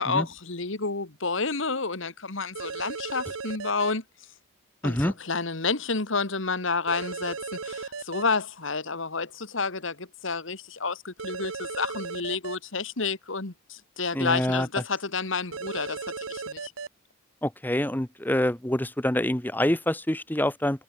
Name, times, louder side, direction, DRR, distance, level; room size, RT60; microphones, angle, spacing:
voice 1, 0.0-4.0 4.8-16.7, left 4 dB, 65° left, 1.9 m, -30 dB
sound 1, 2.6-3.9 6.9-8.2 11.2-12.6 15.5-16.9, right 4 dB, 85° right, 1.1 m, -35 dB
voice 2, 4.8-5.1 14.1-14.7 17.4-20.8, left 1 dB, 10° left, 1.0 m, -26 dB
head